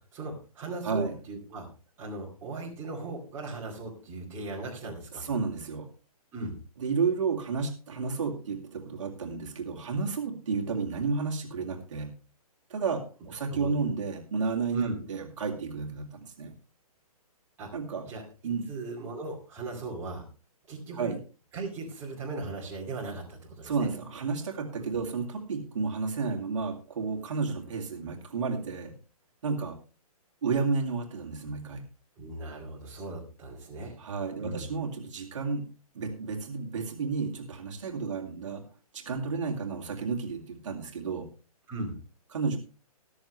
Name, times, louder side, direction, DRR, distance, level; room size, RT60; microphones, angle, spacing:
voice 1, 0.1-1.7 2.0-5.2 6.3-6.6 13.5-13.7 14.7-15.0 17.6-17.7 18.0-18.2 18.7-20.2 20.7-21.1 21.5-23.9 32.2-34.0 34.4-34.7 41.7-42.0, right 3 dB, 15° right, -3 dB, 2.4 m, -38 dB
voice 2, 0.8-1.2 5.1-5.9 6.8-12.1 12.7-16.5 17.7-18.0 18.4-18.7 20.9-21.2 23.6-28.9 29.4-29.8 30.4-31.8 34.0-35.7 35.9-38.7 38.9-41.3 42.3-42.6, right 4 dB, 50° right, 1 dB, 2.2 m, -31 dB
13.5 x 12.5 x 3.2 m, 0.34 s
hypercardioid pair, 170°, 20 cm